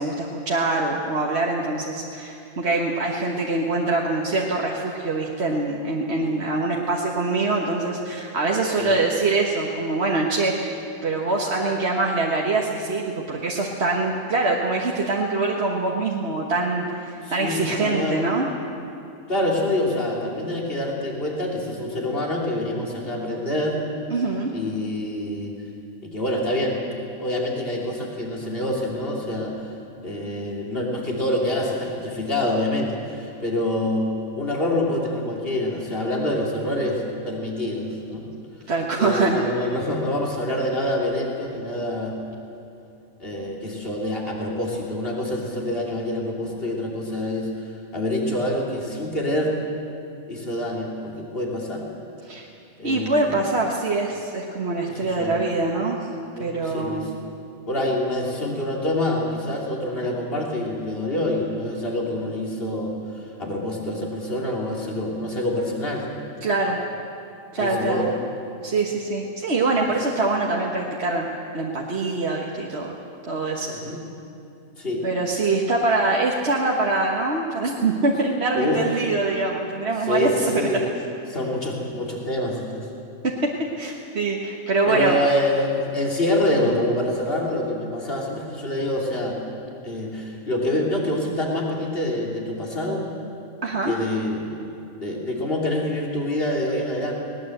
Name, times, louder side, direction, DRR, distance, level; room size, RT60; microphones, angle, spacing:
voice 1, 0.0-10.8 11.0-18.5 24.1-24.5 38.7-39.4 52.2-52.5 52.8-56.1 56.4-57.1 66.4-66.8 67.5-68.1 68.6-71.3 71.5-72.9 73.3-73.7 75.0-80.6 83.8-85.2 93.6-93.9, right 3 dB, 45° right, -2 dB, 1.6 m, -24 dB
voice 2, 17.2-18.2 19.3-23.8 24.5-25.6 26.0-26.8 27.2-29.7 30.0-38.3 39.0-42.2 43.2-49.5 50.3-51.8 52.8-53.4 54.9-55.4 56.4-57.1 57.7-66.1 67.6-68.2 73.7-74.0 74.8-75.0 78.6-78.9 80.0-80.8 81.3-82.9 84.9-89.4 89.8-93.1 93.8-94.5 95.0-97.1, left 1 dB, 40° left, -2 dB, 3.4 m, -26 dB
20.5 x 19.0 x 7.9 m, 2.6 s
omnidirectional pair, 1.6 m